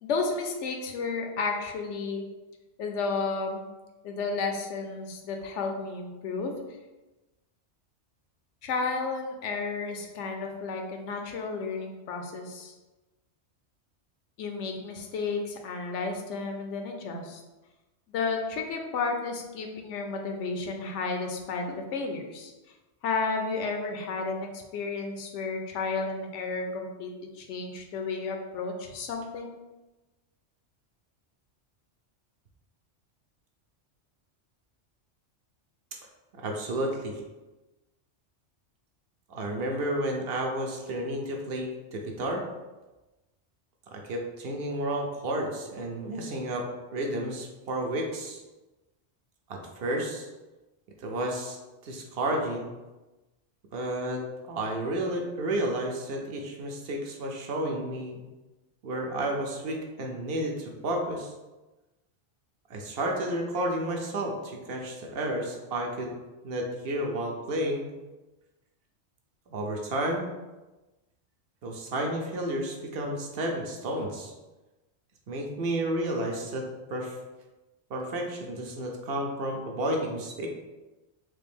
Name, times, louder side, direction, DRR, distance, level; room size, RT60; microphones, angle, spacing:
voice 1, 0.0-2.2 2.8-3.7 4.0-6.5 8.6-12.7 14.4-17.4 18.1-21.7 21.9-22.5 23.0-27.1 27.4-29.6, left 4 dB, 90° left, 3 dB, 0.9 m, -32 dB
voice 2, 36.3-37.1 39.3-42.4 43.9-48.4 49.5-50.3 51.0-51.6 51.8-52.7 53.7-54.2 54.5-58.2 58.8-61.3 62.7-66.1 66.4-67.9 69.5-70.3 71.6-74.3 75.3-77.2 77.9-80.5, right 1 dB, 65° right, 1 dB, 0.7 m, -31 dB
3.3 x 2.5 x 3.4 m, 1.1 s
omnidirectional pair, 1.2 m